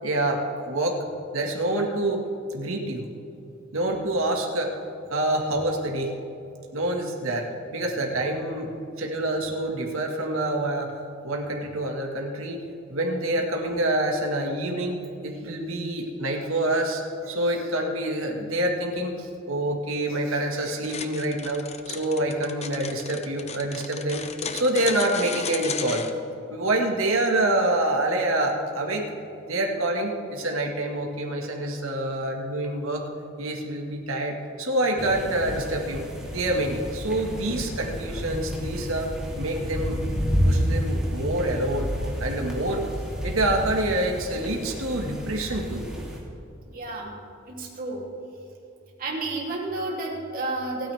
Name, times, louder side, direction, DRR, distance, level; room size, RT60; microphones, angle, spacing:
voice 1, 0.0-1.0 1.3-2.2 2.5-3.1 3.7-4.7 5.1-6.1 6.7-10.9 11.2-12.6 12.9-24.2 24.5-26.1 26.5-29.0 29.5-33.1 33.4-36.0 36.3-40.0 40.4-41.9 42.2-42.8 43.2-45.8, right 1 dB, 85° right, 1 dB, 1.8 m, -27 dB
sound 1, 20.8-26.1, left 6 dB, 30° left, 0.8 m, -34 dB
sound 2, 35.0-46.2, equal, 5° right, 2.9 m, -30 dB
voice 2, 46.7-47.1 47.5-48.0 49.0-50.9, right 2 dB, 45° right, -2 dB, 3.0 m, -31 dB
28.5 x 9.7 x 3.5 m, 2.9 s
head